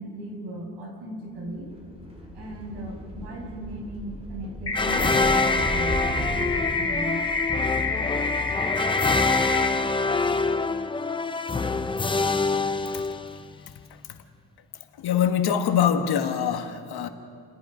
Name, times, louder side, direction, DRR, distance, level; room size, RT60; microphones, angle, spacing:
voice 1, 0.0-1.7 2.3-6.0 6.3-7.3, right 1 dB, 70° right, 0 dB, 6.2 m, -37 dB
sound 1, 1.5-8.2, equal, 15° right, 2.4 m, -36 dB
sound 2, 4.7-9.7, left 3 dB, 35° left, 2.2 m, -27 dB
sound 3, 4.7-13.6, left 3 dB, 10° left, 0.5 m, -26 dB
voice 2, 15.0-17.1, left 8 dB, 65° left, 6 dB, 1.5 m, -24 dB
30.0 x 20.5 x 5.0 m, 2.4 s
cardioid pair, 170°, 42 cm